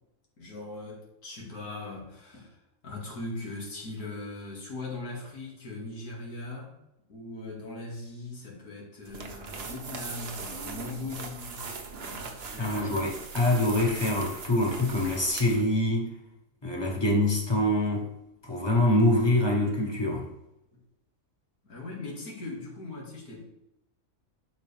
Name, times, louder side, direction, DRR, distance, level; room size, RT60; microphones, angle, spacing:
voice 1, 0.4-6.7 7.1-13.1 20.7-20.8 21.6-23.4, left 2 dB, 85° left, -3 dB, 2.7 m, -40 dB
sound 1, 9.0-15.7, right 4 dB, 50° right, 1.1 m, -40 dB
voice 2, 12.6-16.1 16.6-18.1 18.4-20.3, left 1 dB, 20° left, -1 dB, 1.5 m, -25 dB
11.0 x 4.7 x 3.4 m, 0.90 s
omnidirectional pair, 1.5 m